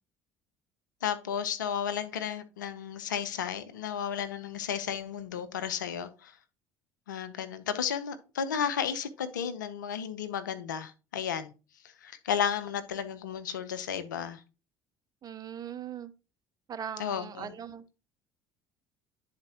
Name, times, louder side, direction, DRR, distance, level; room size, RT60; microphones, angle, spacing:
voice 1, 1.0-6.4 7.1-11.5 12.0-14.4 17.0-17.5, left 8 dB, 90° left, 0.6 m, -33 dB
voice 2, 15.2-16.1 16.7-17.9, right 8 dB, 40° right, 0.8 m, -40 dB
10.5 x 4.2 x 2.9 m
hypercardioid pair, 65°, 10 cm